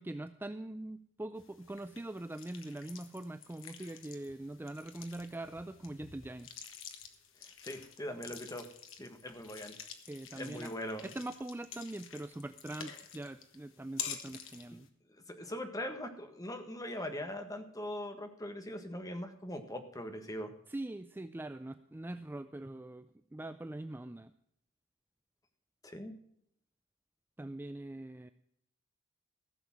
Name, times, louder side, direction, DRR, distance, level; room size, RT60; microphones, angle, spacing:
voice 1, 0.0-6.5 10.1-10.7 11.0-14.9 20.7-24.3 27.4-28.3, right 1 dB, 10° right, 10 dB, 0.4 m, -43 dB
sound 1, 1.4-14.9, left 8 dB, 70° left, 1.5 m, -49 dB
voice 2, 7.4-8.7 9.0-9.7 10.3-11.1 15.3-20.5 25.8-26.1, left 1 dB, 20° left, 6 dB, 1.4 m, -41 dB
15.0 x 7.0 x 5.9 m, 0.70 s
head